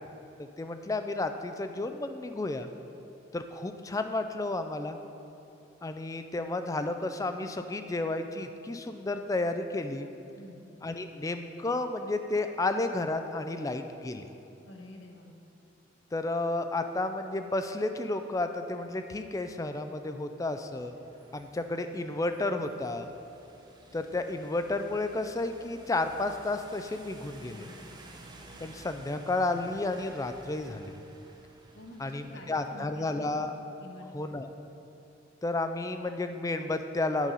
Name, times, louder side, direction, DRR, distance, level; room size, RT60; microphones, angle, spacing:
voice 1, 0.4-2.7 3.3-5.0 5.8-10.1 10.8-14.3 16.1-20.9 21.3-23.1 23.9-27.7 28.6-30.9 32.0-33.5 34.1-34.5 35.4-37.3, left 2 dB, 15° left, 8 dB, 0.3 m, -32 dB
voice 2, 14.7-15.3 27.4-27.8 31.7-33.5 33.8-34.2, left 1 dB, 60° left, 1 dB, 1.0 m, -48 dB
sound 1, 20.5-32.7, right 2 dB, 20° right, 0.6 m, -53 dB
8.9 x 5.3 x 5.5 m, 2.8 s
head